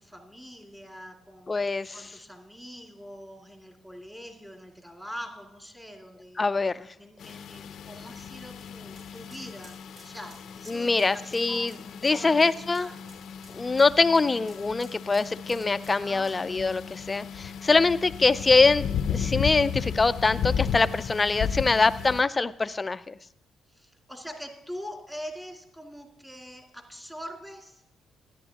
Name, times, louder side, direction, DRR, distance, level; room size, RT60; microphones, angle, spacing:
voice 1, 0.0-1.5 1.9-6.5 7.0-11.7 12.1-12.4 12.7-13.1 16.0-16.3 23.7-27.8, equal, 5° right, 1 dB, 2.4 m, -43 dB
voice 2, 1.5-2.1 6.4-6.9 10.7-11.7 12.0-12.9 13.5-23.2, left 3 dB, 25° left, 14 dB, 0.4 m, -24 dB
sound 1, 7.2-22.2, left 7 dB, 70° left, 0.6 m, -35 dB
sound 2, 7.9-18.3 18.7-18.8 20.2-20.3, right 1 dB, 55° right, 4.2 m, -56 dB
13.5 x 10.5 x 2.9 m, 0.85 s
cardioid pair, 90°, 0 cm